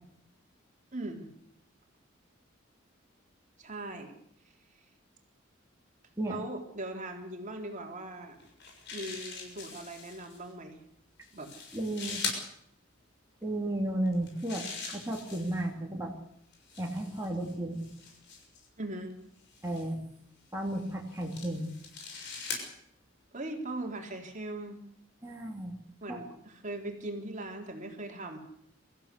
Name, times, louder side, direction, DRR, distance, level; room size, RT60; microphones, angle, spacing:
voice 1, 0.9-1.3 3.6-4.2 6.3-8.4 8.9-10.8 11.3-11.5 18.8-19.2 23.3-24.8 26.0-28.4, right 2 dB, 40° right, 3 dB, 3.7 m, -40 dB
sound 1, 8.4-10.4 11.2-12.4 14.1-15.7 16.5-18.7 19.5-19.9 20.7-22.7, left 5 dB, 60° left, 6.7 m, -41 dB
voice 2, 11.7-12.2 13.4-16.1 16.8-17.8 19.6-20.0 20.5-21.7 25.2-25.7 26.1-26.2, right 1 dB, 15° right, -1 dB, 3.3 m, -33 dB
24.5 x 15.0 x 8.4 m, 0.71 s
head